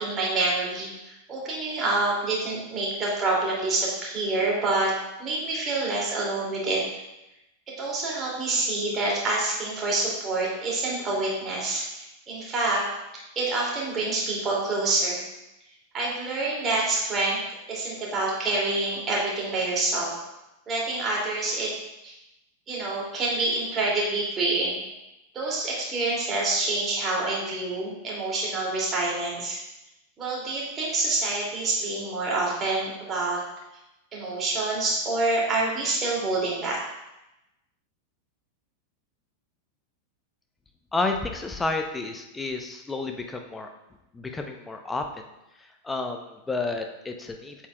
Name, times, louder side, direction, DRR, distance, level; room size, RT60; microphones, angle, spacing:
voice 1, 0.0-4.9 5.2-6.8 7.8-12.8 13.4-15.2 15.9-17.4 17.7-20.1 20.7-21.7 22.0-22.1 22.7-24.8 25.3-29.6 30.2-33.4 34.1-36.8, right 2 dB, 25° right, -4 dB, 2.4 m, -27 dB
voice 2, 40.9-43.7 44.1-45.3 45.8-47.6, left 3 dB, 10° left, 4 dB, 0.7 m, -30 dB
8.1 x 7.3 x 2.3 m, 0.94 s
figure-of-eight pair, 90°, 0 cm